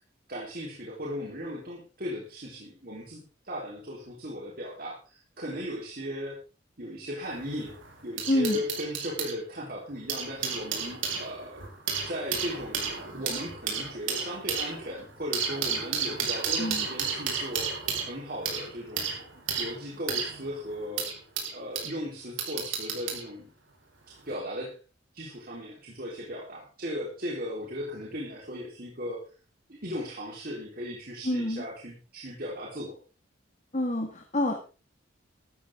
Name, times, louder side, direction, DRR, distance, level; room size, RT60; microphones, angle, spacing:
voice 1, 0.3-6.4 6.8-11.7 12.0-19.1 19.6-21.1 21.5-23.5 24.1-24.8 25.1-29.2 29.7-33.0, equal, 45° right, -3 dB, 3.8 m, -37 dB
sound 1, 7.2-9.3 9.9-21.9 22.4-23.3 24.1-24.3, right 6 dB, 80° right, 5.0 m, -33 dB
voice 2, 8.3-8.6 16.6-16.8 31.2-31.7 33.7-34.7, left 1 dB, 35° left, 3 dB, 1.8 m, -27 dB
14.0 x 13.5 x 3.7 m, 0.35 s
head